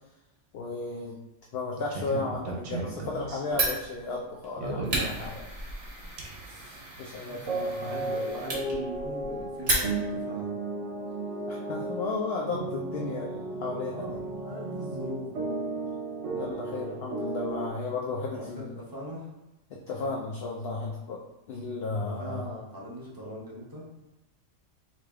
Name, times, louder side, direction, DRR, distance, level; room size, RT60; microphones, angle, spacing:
voice 1, 0.5-1.2 1.5-5.5 7.0-8.2 11.5-14.2 16.3-18.7 19.7-21.2 21.5-22.5, left 3 dB, 65° left, -2 dB, 0.7 m, -34 dB
sound 1, 1.7-3.6 4.6-5.1 6.2-6.4 6.7-7.0 7.5-17.7, right 3 dB, 70° right, 1.0 m, -34 dB
Fire, 3.5-10.3, right 2 dB, 45° right, 1.1 m, -34 dB
voice 2, 6.5-6.8 7.2-7.5 7.8-10.6 13.8-15.4 18.3-19.3 22.0-23.8, equal, 20° right, -5 dB, 0.8 m, -40 dB
3.3 x 2.8 x 3.5 m, 0.96 s
omnidirectional pair, 1.3 m